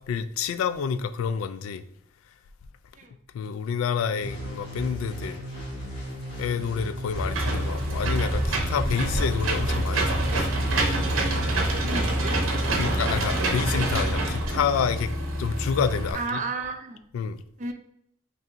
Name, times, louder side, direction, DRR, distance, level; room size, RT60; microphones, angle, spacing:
voice 1, 0.0-1.8 3.3-5.4 6.4-10.5 12.8-15.1 15.4-16.4 17.1-17.4, left 6 dB, 85° left, 0.3 m, -28 dB
sound 1, 4.2-12.0, equal, 30° left, 1.6 m, -36 dB
Engine / Mechanisms, 7.2-16.1, right 1 dB, 85° right, 0.7 m, -26 dB
voice 2, 11.8-12.4 16.1-17.0 17.6-17.7, right 3 dB, 35° right, 0.5 m, -32 dB
5.4 x 2.7 x 2.5 m
head